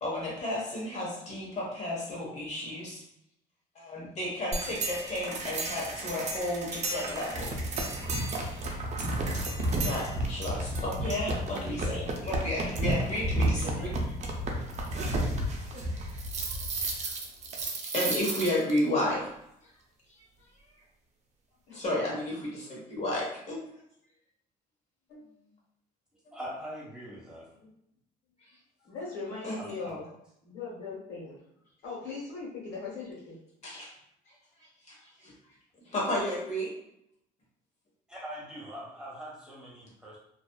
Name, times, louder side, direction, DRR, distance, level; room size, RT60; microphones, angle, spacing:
voice 1, 0.0-3.0 3.7-7.5 9.8-13.9 16.4-17.1 17.5-19.3 21.7-23.6 29.4-29.6 33.6-33.9 34.9-35.3 35.8-36.7, left 1 dB, 40° left, -4 dB, 1.1 m, -32 dB
sound 1, 4.5-18.8, right 1 dB, 45° right, 0.5 m, -32 dB
voice 2, 26.3-27.5 29.6-30.0 38.1-40.2, equal, 5° right, -8 dB, 1.1 m, -42 dB
voice 3, 28.8-30.1 30.4-31.4 31.8-33.4, left 4 dB, 85° left, -5 dB, 1.2 m, -39 dB
2.5 x 2.3 x 2.2 m, 0.76 s
cardioid pair, 110°, 17 cm